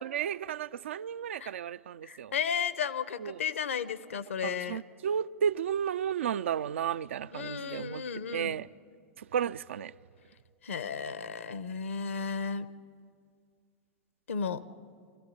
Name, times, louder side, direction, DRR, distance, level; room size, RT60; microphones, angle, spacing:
voice 1, 0.0-2.3 3.2-3.4 4.4-8.0 8.3-8.7 9.2-9.9, right 8 dB, 65° right, 0.5 m, -33 dB
voice 2, 2.0-4.8 7.3-8.6 10.6-12.7 14.3-14.6, left 6 dB, 70° left, 1.0 m, -34 dB
25.0 x 14.5 x 9.7 m
figure-of-eight pair, 90°, 7 cm